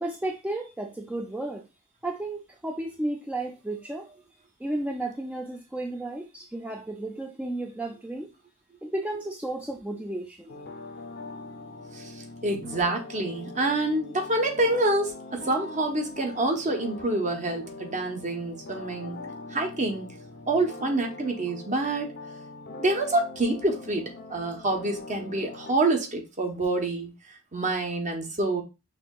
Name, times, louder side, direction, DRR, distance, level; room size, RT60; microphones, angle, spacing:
voice 1, 0.0-1.7 2.0-4.2 4.6-8.3 8.8-10.6, right 1 dB, 5° right, 1 dB, 0.4 m, -33 dB
sound 1, 10.5-25.7, left 2 dB, 50° left, 0.6 m, -42 dB
voice 2, 12.4-19.2 19.5-20.1 20.5-22.1 22.8-24.0 24.3-27.1 27.5-28.6, right 2 dB, 35° right, 3 dB, 0.9 m, -27 dB
5.9 x 2.7 x 2.3 m, 0.27 s
head